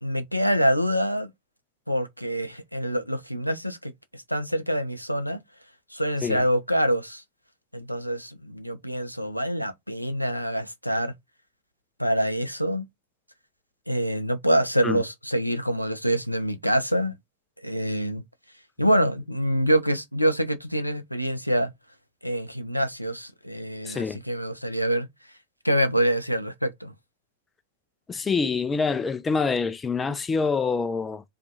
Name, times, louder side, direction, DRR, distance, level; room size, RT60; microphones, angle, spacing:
voice 1, 0.0-1.3 1.9-5.4 5.9-7.2 7.7-11.1 12.0-12.9 13.9-17.1 17.6-18.2 18.8-21.7 22.2-25.1 25.6-26.9, equal, 90° left, 0.3 m, -26 dB
voice 2, 23.8-24.2 28.1-31.2, left 4 dB, 15° left, 0.3 m, -26 dB
2.6 x 2.3 x 2.6 m
figure-of-eight pair, 90°, 0 cm